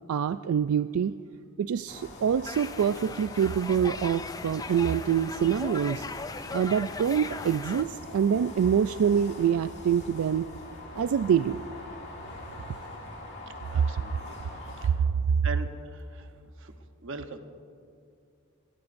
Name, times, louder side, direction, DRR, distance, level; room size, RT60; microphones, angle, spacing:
voice 1, 0.1-1.1 1.6-6.1 6.5-10.5 11.0-11.6, right 8 dB, 85° right, 12 dB, 0.3 m, -25 dB
sound 1, 1.9-14.9, left 1 dB, 55° left, 2.4 m, -43 dB
sound 2, 2.4-7.8, left 4 dB, 15° left, 0.3 m, -39 dB
voice 2, 13.7-14.4 14.8-15.0 15.4-16.3 16.6-16.7 17.0-17.4, right 3 dB, 60° right, 7 dB, 1.0 m, -40 dB
25.0 x 16.5 x 2.6 m, 2.3 s
head